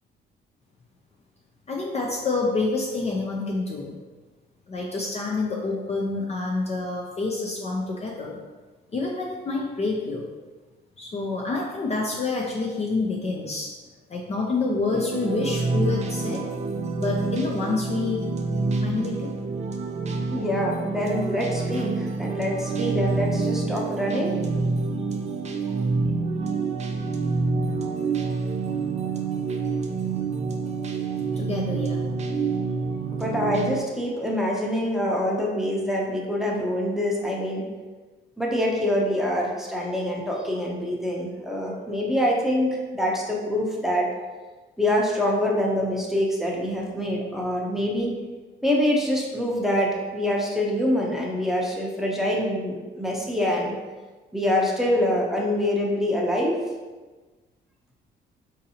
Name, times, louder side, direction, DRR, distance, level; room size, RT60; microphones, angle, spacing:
voice 1, 1.7-4.0 4.7-8.4 8.9-10.2 11.0-13.7 14.1-16.4 17.0-18.2 18.8-19.3 31.4-32.0, left 3 dB, 35° left, -1 dB, 0.4 m, -27 dB
sound 1, 14.9-33.8, right 4 dB, 35° right, 0.4 m, -27 dB
voice 2, 20.3-24.4 33.1-37.6 38.4-44.1 44.8-48.1 48.6-53.7 54.3-56.6, left 1 dB, ahead, -3 dB, 0.7 m, -25 dB
3.8 x 2.7 x 2.7 m, 1.3 s
cardioid pair, 90°, 20 cm